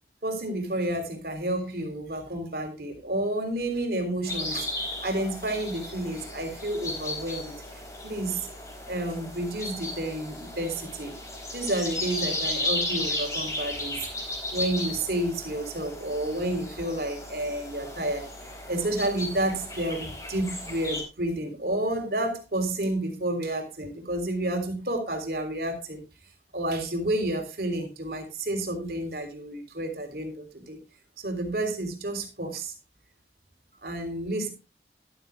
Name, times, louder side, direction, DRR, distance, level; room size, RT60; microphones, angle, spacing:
voice 1, 0.2-4.7 5.0-7.5 8.0-8.5 8.9-11.1 11.5-14.0 14.5-18.3 18.7-26.0 26.5-30.8 31.2-32.7 33.8-34.5, right 1 dB, 60° right, 5 dB, 3.3 m, -30 dB
sound 1, 4.3-21.0, left 1 dB, 20° left, 4.3 m, -35 dB
13.5 x 12.5 x 2.2 m, 0.30 s
head